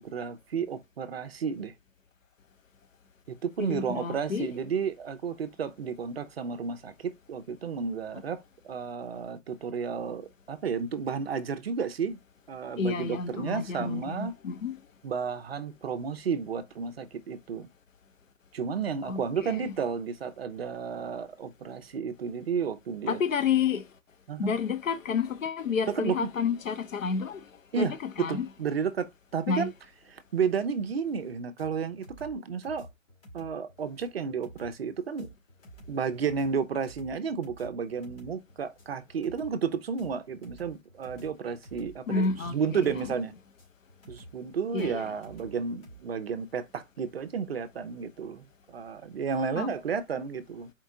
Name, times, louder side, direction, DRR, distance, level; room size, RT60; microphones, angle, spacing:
voice 1, 0.0-1.7 3.3-12.2 12.5-14.3 15.0-17.7 18.5-23.2 24.3-24.5 25.9-26.3 27.7-29.7 30.1-32.9 33.3-35.3 35.9-43.3 44.1-50.7, right 6 dB, 50° right, 0.6 m, -32 dB
voice 2, 3.6-4.5 12.8-14.8 19.1-19.6 23.1-23.8 24.4-27.4 27.7-28.4 29.5-29.7 42.1-42.9 44.7-45.0 49.6-49.7, left 6 dB, 70° left, 0.9 m, -30 dB
sound 1, 31.6-46.0, right 1 dB, 45° left, 2.1 m, -50 dB
4.4 x 2.8 x 3.6 m
hypercardioid pair, 160°, 40 cm